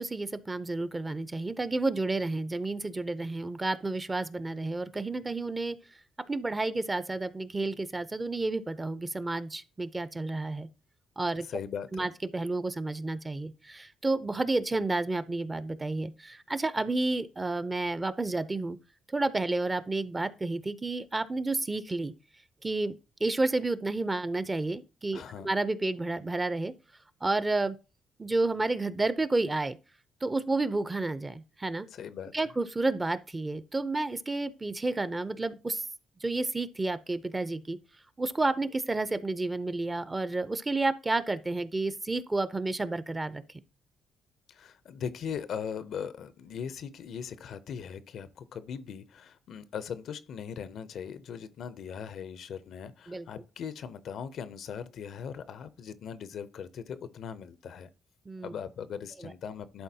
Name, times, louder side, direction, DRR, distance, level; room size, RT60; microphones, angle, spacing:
voice 1, 0.0-5.8 6.3-10.7 11.2-11.5 11.9-18.8 19.1-22.1 22.6-22.9 23.2-26.7 27.2-27.8 28.2-29.8 30.2-31.9 32.3-35.8 36.2-37.8 38.2-43.4 53.1-53.3 58.3-58.5 59.2-59.3, right 2 dB, 20° right, 0.5 m, -30 dB
voice 2, 11.5-12.1 25.1-25.5 31.9-32.3 44.5-57.9 58.4-59.8, left 7 dB, 70° left, 0.5 m, -39 dB
11.5 x 3.9 x 2.7 m
cardioid pair, 90°, 0 cm